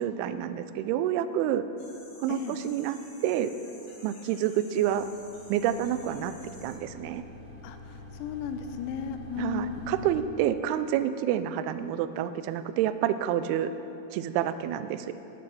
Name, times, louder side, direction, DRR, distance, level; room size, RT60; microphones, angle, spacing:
voice 1, 0.0-1.6 2.2-2.4 2.6-3.0 3.2-3.5 4.0-5.1 5.5-6.3 6.6-7.2 9.4-13.7 14.1-15.1, right 11 dB, 85° right, 11 dB, 2.5 m, -28 dB
sound 1, 1.8-6.7, left 2 dB, 65° left, 4.3 m, -52 dB
sound 2, 4.9-10.2, left 2 dB, 25° right, 1.8 m, -46 dB
voice 2, 7.6-10.1, left 7 dB, 85° left, 8 dB, 2.7 m, -35 dB
11.0 x 9.5 x 6.3 m, 2.9 s
omnidirectional pair, 4.6 m